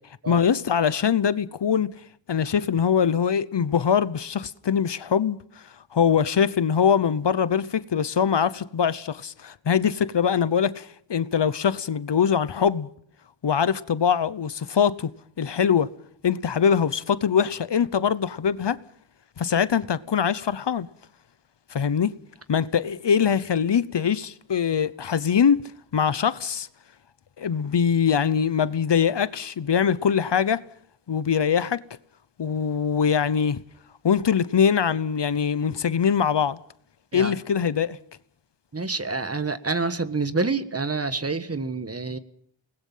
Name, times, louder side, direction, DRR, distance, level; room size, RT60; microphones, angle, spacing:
voice 1, 0.3-1.9 2.3-5.4 5.9-12.9 13.4-15.1 15.4-15.9 16.2-18.8 19.4-20.9 21.7-22.1 22.5-25.6 25.9-26.7 27.4-30.6 31.1-31.8 32.4-33.6 34.0-36.6 37.1-38.0, left 7 dB, 70° left, 1.0 m, -22 dB
voice 2, 38.7-42.2, right 3 dB, 35° right, 1.5 m, -27 dB
28.5 x 20.0 x 5.7 m
wide cardioid pair, 95°, 44 cm